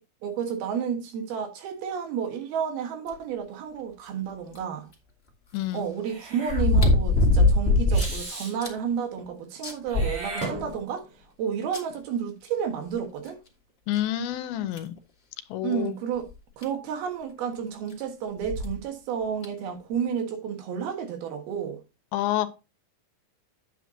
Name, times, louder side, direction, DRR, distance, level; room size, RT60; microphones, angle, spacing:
voice 1, 0.2-4.9 5.7-11.1 11.4-13.4 15.6-16.3 16.6-21.8, right 7 dB, 85° right, 3.5 m, -31 dB
sound 1, 4.5-4.6 6.5-8.2 8.6-8.7 9.2-9.3 9.6-10.7 11.7-11.8 13.3-13.4 13.9-14.0 14.8-15.0 16.3-16.4 16.6-16.7 18.4-18.7 19.4-19.5, left 2 dB, 25° left, 1.4 m, -21 dB
voice 2, 5.5-5.9 13.9-15.0 15.5-16.0 22.1-22.5, left 12 dB, 85° left, 2.6 m, -28 dB
Meow / Hiss, 6.0-6.7 7.9-8.5 9.9-11.1, right 2 dB, 45° right, 5.3 m, -36 dB
9.3 x 8.1 x 2.9 m
omnidirectional pair, 4.3 m